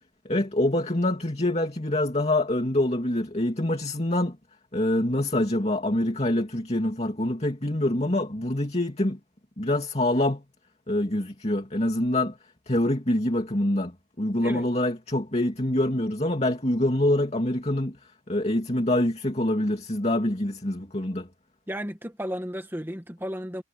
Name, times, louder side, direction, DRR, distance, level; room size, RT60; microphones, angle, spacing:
voice 1, 0.2-4.4 4.7-9.2 9.6-10.4 10.9-12.4 12.7-18.0 18.3-21.3, left 1 dB, 30° left, 2.7 m, -25 dB
voice 2, 21.7-23.6, equal, 10° right, 1.8 m, -33 dB
head